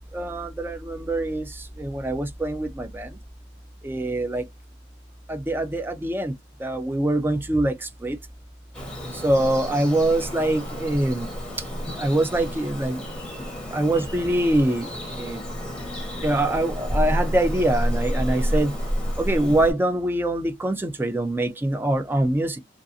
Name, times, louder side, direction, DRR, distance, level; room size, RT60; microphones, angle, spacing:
voice 1, 0.1-3.2 3.8-4.5 5.3-8.2 9.1-11.3 12.0-13.0 13.4-15.4 16.2-18.8 19.2-22.6, right 1 dB, 10° right, 0.3 m, -24 dB
Bird vocalization bird call bird song, 8.7-19.7, equal, 5° left, 0.9 m, -30 dB
2.5 x 2.4 x 2.6 m
head